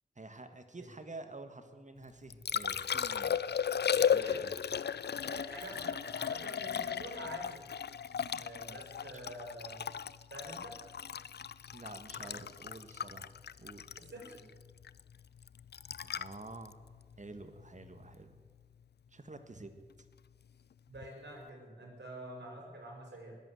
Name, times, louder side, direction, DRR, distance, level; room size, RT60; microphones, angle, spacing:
voice 1, 0.1-3.4 4.1-4.5 11.7-13.8 16.0-16.7 17.2-18.4 19.1-19.8, right 2 dB, 40° right, 8 dB, 1.6 m, -49 dB
Liquid, 2.0-18.1 20.9-21.1, left 8 dB, 65° left, 0.4 m, -36 dB
voice 2, 5.3-7.7 8.4-9.8 10.3-10.8 12.2-12.5 14.0-14.5 20.9-23.4, right 1 dB, 70° right, 0 dB, 5.4 m, -47 dB
20.0 x 8.2 x 7.8 m, 1.4 s
cardioid pair, 45°, 18 cm